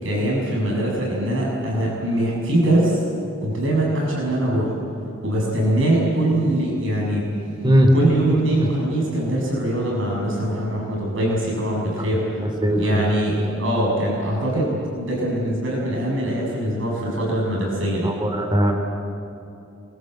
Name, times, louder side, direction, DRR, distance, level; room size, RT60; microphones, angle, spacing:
voice 1, 0.0-3.0 3.4-4.8 5.2-7.3 7.9-18.1, right 1 dB, 70° right, -3 dB, 7.0 m, -22 dB
voice 2, 12.6-13.0 18.0-18.7, equal, 25° right, 3 dB, 3.0 m, -18 dB
28.5 x 22.0 x 7.9 m, 2.7 s
head